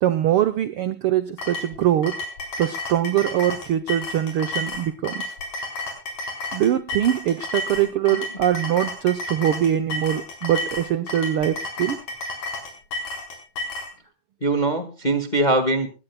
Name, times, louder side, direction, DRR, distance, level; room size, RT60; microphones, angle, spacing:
voice 1, 0.0-2.2 2.6-5.3 6.5-12.0, right 11 dB, 80° right, 11 dB, 1.2 m, -22 dB
sound 1, 1.4-13.9, left 2 dB, 75° left, 5.6 m, -32 dB
voice 2, 7.8-8.2 14.4-15.9, right 2 dB, 25° left, 8 dB, 0.9 m, -23 dB
20.5 x 17.5 x 2.2 m, 0.32 s
omnidirectional pair, 3.5 m